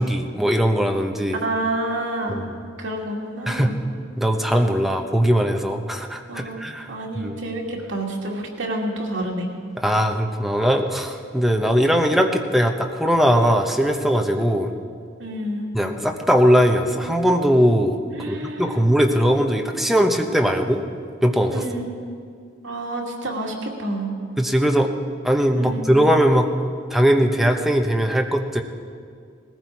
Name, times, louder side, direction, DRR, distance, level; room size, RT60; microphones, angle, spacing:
voice 1, 0.0-1.4 2.3-2.4 3.5-3.7 4.2-7.4 9.8-14.7 15.7-18.0 18.3-20.8 21.2-21.6 24.4-24.9 25.2-28.6, equal, ahead, 3 dB, 0.9 m, -20 dB
voice 2, 1.4-2.4 2.8-3.7 6.3-9.5 15.2-15.7 18.2-18.8 21.5-22.1 22.6-24.1 25.6-25.9, right 1 dB, 80° right, -1 dB, 2.4 m, -29 dB
19.5 x 15.0 x 4.7 m, 2.2 s
head